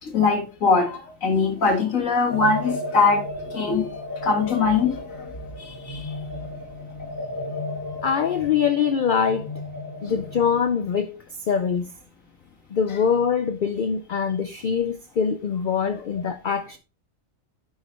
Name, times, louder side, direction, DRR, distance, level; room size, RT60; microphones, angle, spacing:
voice 1, 0.0-3.2 3.5-3.9 4.2-5.2 5.6-6.1, left 4 dB, 85° left, 2.1 m, -22 dB
sound 1, 2.3-10.6, left 2 dB, 15° left, 1.0 m, -34 dB
voice 2, 8.0-9.5 10.0-11.9 12.7-16.8, left 7 dB, 60° left, 0.5 m, -23 dB
9.4 x 6.1 x 3.1 m
omnidirectional pair, 1.4 m